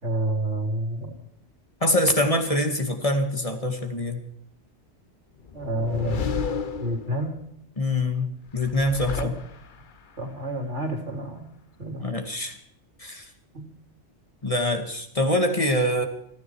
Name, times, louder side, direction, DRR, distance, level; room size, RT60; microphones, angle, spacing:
voice 1, 0.0-1.1 5.5-7.4 9.2-9.3 10.2-11.5 11.8-12.0 13.5-13.7, right 1 dB, 85° right, 4 dB, 3.9 m, -29 dB
voice 2, 1.8-4.2 7.8-8.3 8.5-9.3 12.0-12.6 13.0-13.3 14.4-16.1, left 1 dB, 30° left, 5 dB, 2.3 m, -24 dB
sound 1, 5.4-7.4 8.5-10.0, left 6 dB, 45° left, 1.0 m, -32 dB
29.5 x 9.9 x 4.7 m, 0.69 s
omnidirectional pair, 1.2 m